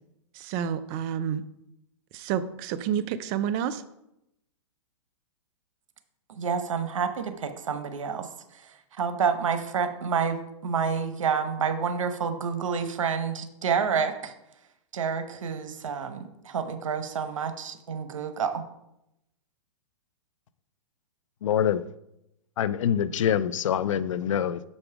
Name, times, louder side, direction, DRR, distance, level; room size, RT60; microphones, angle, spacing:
voice 1, 0.3-1.4 2.1-3.8, right 9 dB, 35° right, 12 dB, 0.4 m, -29 dB
voice 2, 6.3-14.3 14.9-18.6, right 6 dB, 90° right, 8 dB, 0.9 m, -29 dB
voice 3, 21.4-21.9 22.6-24.6, left 9 dB, 80° left, 16 dB, 0.5 m, -25 dB
7.0 x 5.3 x 4.8 m, 0.83 s
hypercardioid pair, 145°, 16 cm